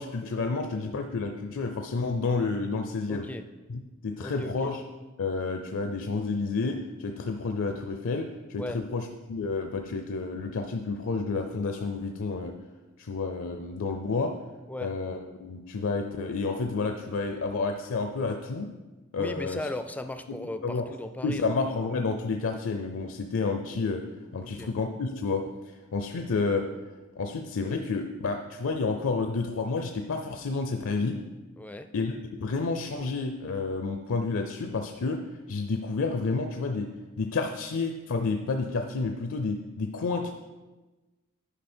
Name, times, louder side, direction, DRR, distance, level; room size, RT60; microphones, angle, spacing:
voice 1, 0.0-3.3 3.7-4.8 5.2-12.5 13.0-14.3 14.8-18.7 19.1-19.6 20.3-20.9 21.2-24.0 24.3-26.6 27.2-31.2 31.9-35.2 35.5-36.9 37.2-40.3, left 4 dB, 65° left, 5 dB, 0.5 m, -30 dB
voice 2, 3.1-3.4 4.2-4.7 8.6-8.8 14.7-14.9 19.2-21.5 24.4-24.7 31.6-31.9, left 1 dB, 5° left, 9 dB, 0.3 m, -37 dB
10.0 x 5.0 x 4.3 m, 1.2 s
head